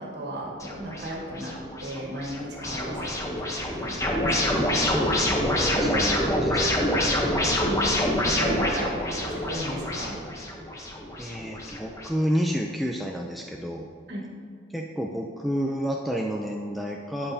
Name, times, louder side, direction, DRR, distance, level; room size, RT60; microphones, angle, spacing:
voice 1, 0.0-4.6 7.3-10.2 14.1-14.3, equal, 55° right, -3 dB, 1.9 m, -36 dB
sound 1, 0.6-12.1, left 1 dB, 15° left, 0.9 m, -26 dB
voice 2, 4.5-6.8 11.2-13.9 14.7-17.3, equal, ahead, 0 dB, 0.4 m, -30 dB
12.5 x 7.8 x 2.8 m, 2.1 s
head